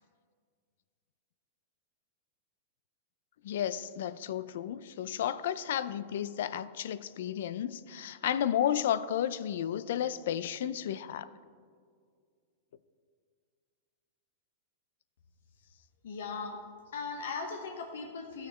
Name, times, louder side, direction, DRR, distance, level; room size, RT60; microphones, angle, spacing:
voice 1, 3.4-11.3, left 10 dB, 70° left, 0.4 m, -32 dB
voice 2, 16.0-16.6 16.9-18.5, left 4 dB, 85° left, 1.0 m, -38 dB
13.0 x 6.5 x 4.3 m
supercardioid pair, 160°, 0 cm